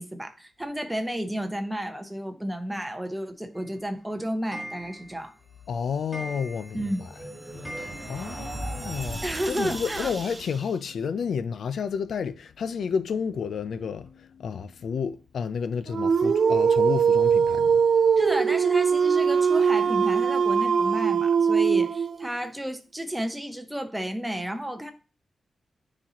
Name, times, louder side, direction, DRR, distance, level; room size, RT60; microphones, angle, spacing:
voice 1, 0.0-5.3 6.7-7.0 9.2-10.1 18.2-24.9, equal, 5° right, 0.9 m, -32 dB
Clock, 3.5-8.6 8.9-9.0 9.3-9.4 9.6-9.7 10.9-11.0 11.5-11.6 12.1-12.2 12.8-12.9 13.4-13.5 14.1-14.2, equal, 10° left, 1.7 m, -43 dB
voice 2, 5.7-6.9 7.5-7.8 8.1-17.8, left 6 dB, 85° left, 0.4 m, -31 dB
sound 1, 6.3-10.8, right 1 dB, 25° right, 1.3 m, -37 dB
Dog, 15.9-22.3, right 6 dB, 60° right, 0.4 m, -21 dB
9.8 x 4.2 x 2.9 m
wide cardioid pair, 155°, 0 cm